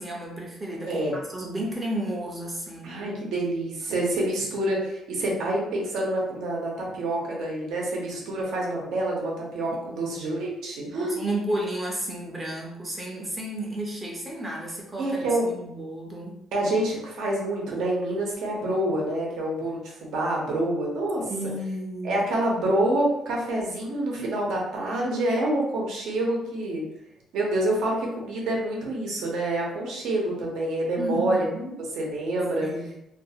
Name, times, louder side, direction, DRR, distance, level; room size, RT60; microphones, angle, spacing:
voice 1, 0.0-3.1 9.7-10.2 10.9-16.4 21.3-22.3 31.0-31.8 32.6-33.0, right 1 dB, 15° right, -2 dB, 0.5 m, -33 dB
voice 2, 0.8-1.2 2.8-11.2 15.0-15.5 16.5-21.2 22.0-26.8 27.3-31.4 32.0-32.7, right 1 dB, 70° right, -2 dB, 0.8 m, -27 dB
2.5 x 2.4 x 2.7 m, 0.87 s
cardioid pair, 175°, 0 cm